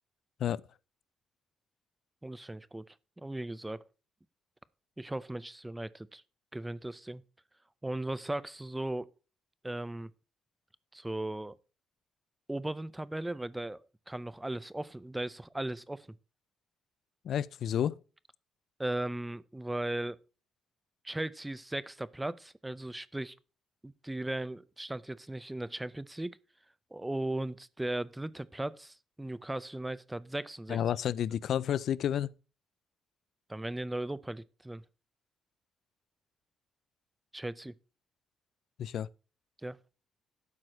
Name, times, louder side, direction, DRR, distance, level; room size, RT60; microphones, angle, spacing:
voice 1, 2.2-3.8 5.0-6.2 6.5-7.2 7.8-9.1 9.6-10.1 10.9-11.6 12.5-13.8 14.1-16.1 18.8-20.2 21.0-23.4 23.8-26.4 26.9-30.8 33.5-34.8 37.3-37.7 39.6-39.8, right 1 dB, 10° right, 0.6 m, -37 dB
voice 2, 17.2-18.0 30.7-32.3 38.8-39.1, left 10 dB, 70° left, 0.4 m, -30 dB
12.0 x 4.8 x 5.8 m
cardioid pair, 90°, 0 cm